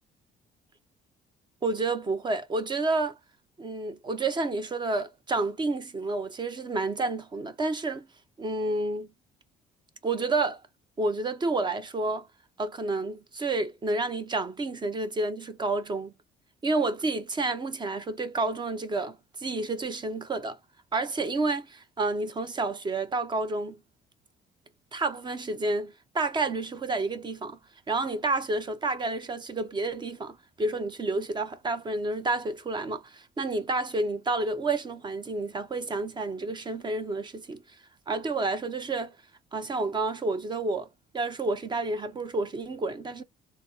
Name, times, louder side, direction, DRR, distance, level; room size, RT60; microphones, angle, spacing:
voice 1, 1.6-3.2 3.6-8.1 8.4-9.1 10.0-10.6 11.0-12.3 12.6-16.1 16.6-20.6 20.9-23.8 24.9-27.6 27.9-37.6 38.1-39.2 39.5-40.9 41.1-43.2, right 3 dB, 25° right, 0.6 m, -30 dB
3.9 x 2.0 x 2.5 m
cardioid pair, 110°, 17 cm